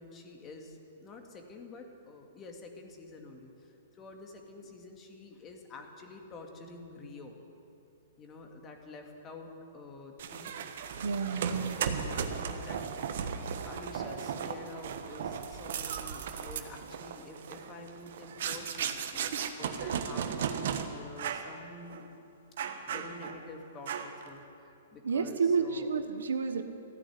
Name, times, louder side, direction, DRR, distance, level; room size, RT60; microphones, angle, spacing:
voice 1, 0.0-7.4 8.2-10.6 11.2-13.3 13.6-20.3 20.9-22.1 22.9-25.9, left 3 dB, 25° left, 3 dB, 2.1 m, -48 dB
sound 1, 10.2-20.8 21.2-21.5 21.9-22.0 22.6-23.4 23.9-24.3, right 7 dB, 65° right, 1.2 m, -36 dB
voice 2, 11.0-11.8 25.0-26.6, right 5 dB, 80° right, 9 dB, 1.1 m, -30 dB
15.0 x 10.0 x 9.5 m, 2.8 s
hypercardioid pair, 125°, 0 cm